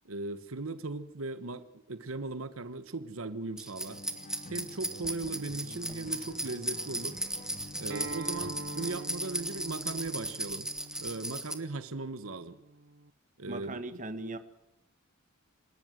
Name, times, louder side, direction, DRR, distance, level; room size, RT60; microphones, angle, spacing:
voice 1, 0.0-4.0 4.5-7.2 7.8-10.7 11.0-12.6 13.4-13.8, right 3 dB, 85° right, 13 dB, 1.2 m, -38 dB
sound 1, 3.6-11.5, right 1 dB, 5° right, 1.6 m, -37 dB
sound 2, 3.9-9.2, left 1 dB, 40° left, 2.8 m, -48 dB
Acoustic guitar, 7.9-13.1, right 3 dB, 60° right, 0.8 m, -45 dB
voice 2, 13.5-14.4, right 2 dB, 40° right, 10 dB, 1.5 m, -38 dB
27.5 x 12.5 x 8.0 m, 0.90 s
head